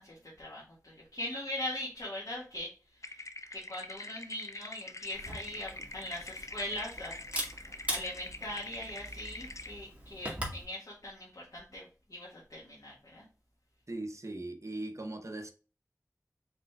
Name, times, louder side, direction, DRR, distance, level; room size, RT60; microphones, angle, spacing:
voice 1, 0.0-7.2 7.5-13.3, left 1 dB, 85° left, 1.6 m, -41 dB
sound 1, 3.0-9.7, left 2 dB, 55° left, 0.5 m, -45 dB
Camera, 5.1-10.6, equal, 20° right, 1.8 m, -41 dB
voice 2, 13.9-15.5, right 2 dB, 50° right, 0.8 m, -39 dB
4.9 x 4.2 x 2.3 m
wide cardioid pair, 50°, 6 cm